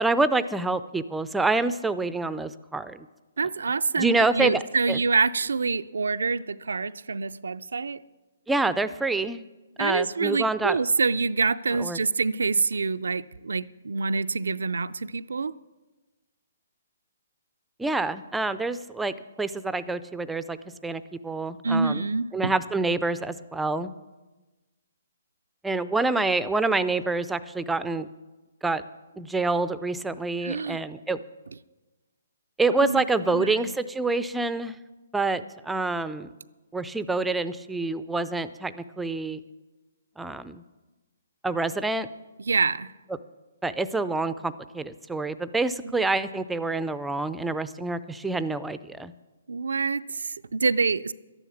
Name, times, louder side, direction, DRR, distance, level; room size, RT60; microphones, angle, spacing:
voice 1, 0.0-3.1 4.0-4.6 4.9-5.0 8.5-9.4 9.8-10.8 11.8-12.0 17.8-20.6 20.8-22.0 22.3-23.9 25.6-28.1 28.6-28.8 29.2-31.2 32.6-34.8 35.1-36.3 36.7-39.4 40.2-40.6 41.4-42.1 43.6-49.1, right 3 dB, 5° right, 0.5 m, -27 dB
voice 2, 3.4-8.0 9.8-15.5 21.6-22.5 30.4-30.8 32.8-33.8 42.4-42.9 45.8-45.9 49.5-51.1, right 4 dB, 85° right, 0.4 m, -26 dB
12.5 x 10.5 x 7.1 m
hypercardioid pair, 150°, 0 cm